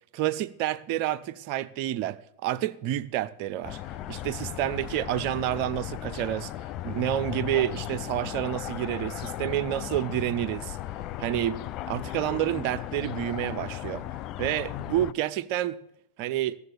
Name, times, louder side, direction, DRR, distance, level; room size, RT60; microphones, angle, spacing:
voice 1, 0.1-3.8 4.1-6.5 6.8-10.8 11.2-11.6 11.9-14.1 14.4-15.8 16.2-16.6, right 13 dB, 45° right, 0.6 m, -29 dB
sound 1, 3.6-15.1, left 13 dB, 35° left, 0.4 m, -36 dB
16.0 x 7.0 x 6.3 m
figure-of-eight pair, 90°, 0 cm